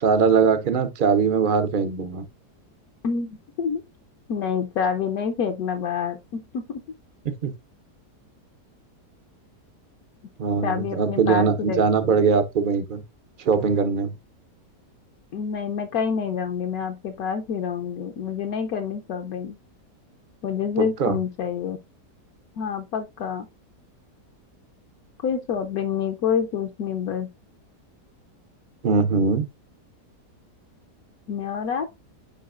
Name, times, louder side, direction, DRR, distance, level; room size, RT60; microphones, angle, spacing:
voice 1, 0.0-2.2 7.4-7.5 10.4-13.0 13.4-14.1 21.0-21.2 28.8-29.5, right 5 dB, 60° right, 0.5 m, -21 dB
voice 2, 3.0-3.8 4.3-6.6 10.6-12.1 15.3-19.6 20.4-21.8 22.5-23.5 25.2-27.3 31.3-31.9, left 7 dB, 70° left, 1.0 m, -27 dB
9.3 x 4.9 x 2.4 m
omnidirectional pair, 1.8 m